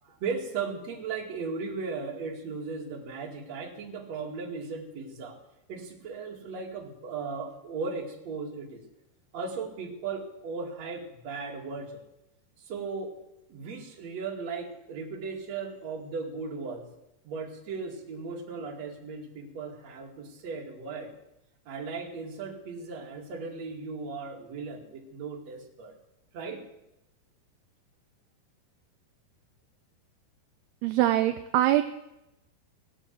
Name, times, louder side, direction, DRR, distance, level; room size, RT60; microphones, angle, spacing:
voice 1, 0.0-5.3 5.7-8.8 9.3-12.0 12.6-13.1 13.5-16.9 17.2-21.1 21.7-25.9 26.3-26.6, right 4 dB, 45° right, 1 dB, 3.1 m, -37 dB
voice 2, 30.8-31.8, right 14 dB, 80° right, 8 dB, 2.5 m, -23 dB
19.0 x 9.0 x 7.7 m, 0.88 s
omnidirectional pair, 4.9 m